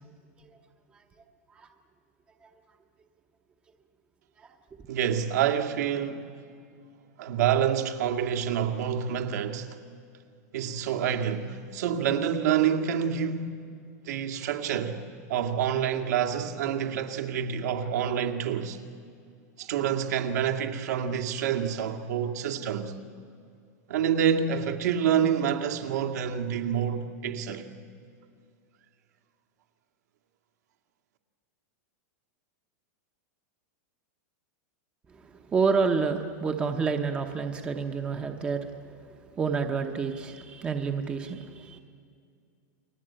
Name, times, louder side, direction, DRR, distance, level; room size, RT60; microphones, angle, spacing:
voice 1, 4.9-6.3 7.2-9.8 10.5-13.6 14.1-15.0 15.3-18.8 19.6-22.9 23.9-27.7, right 8 dB, 70° right, 2.2 m, -27 dB
voice 2, 35.5-39.0 39.3-41.8, right 5 dB, 10° right, 0.9 m, -29 dB
30.0 x 22.0 x 8.9 m
supercardioid pair, 175°, 9 cm